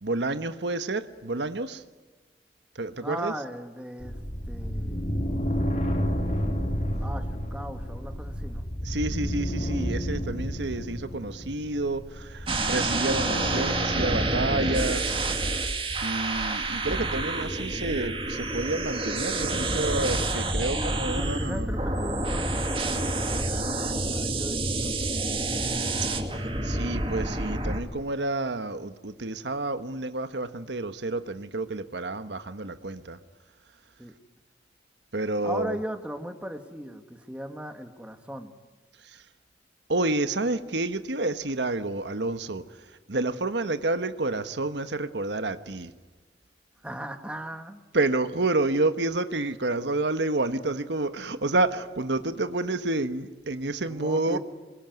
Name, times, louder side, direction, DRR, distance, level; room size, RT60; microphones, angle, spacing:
voice 1, 0.0-1.8 2.7-3.3 8.8-15.2 16.0-21.7 26.6-33.2 35.1-35.8 39.0-39.2 39.9-42.6 43.1-45.9 47.9-54.4, right 2 dB, 85° right, 1.3 m, -29 dB
voice 2, 3.0-4.2 4.5-5.3 7.0-8.7 20.7-24.9 34.0-34.1 35.4-38.5 46.8-47.8 53.8-54.4, right 1 dB, 5° right, 1.9 m, -38 dB
sound 1, 4.0-15.2, equal, 45° left, 4.2 m, -31 dB
sound 2, 12.5-27.8, right 2 dB, 30° right, 2.5 m, -28 dB
26.5 x 22.5 x 9.5 m
head